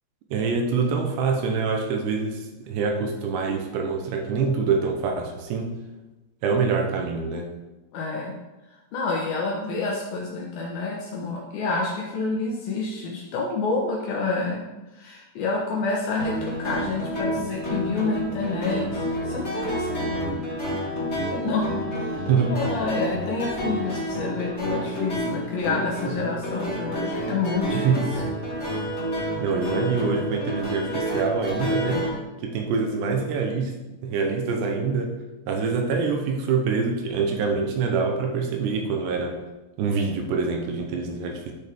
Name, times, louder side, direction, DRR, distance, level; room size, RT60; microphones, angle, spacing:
voice 1, 0.3-5.7 6.4-7.5 22.3-22.6 27.7-28.1 29.4-32.1 32.4-33.7 34.0-35.1 35.5-39.4 39.8-41.5, right 5 dB, 75° right, 2 dB, 2.8 m, -25 dB
voice 2, 7.9-8.3 8.9-14.7 14.9-20.2 21.3-28.0, left 3 dB, 75° left, -2 dB, 2.2 m, -28 dB
sound 1, 16.2-32.1, equal, 20° left, 2.0 m, -29 dB
13.0 x 6.3 x 3.6 m, 1.1 s
omnidirectional pair, 5.8 m